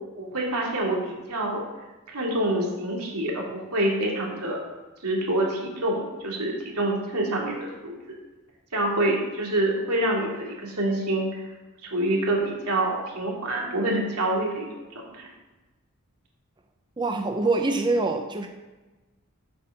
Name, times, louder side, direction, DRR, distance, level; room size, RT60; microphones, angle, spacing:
voice 1, 0.1-1.6 2.1-4.6 5.0-7.9 8.7-11.4 11.8-15.3, right 1 dB, 85° right, -2 dB, 2.3 m, -26 dB
voice 2, 17.0-18.5, right 3 dB, 20° right, 4 dB, 0.6 m, -24 dB
7.9 x 5.9 x 6.6 m, 1.2 s
head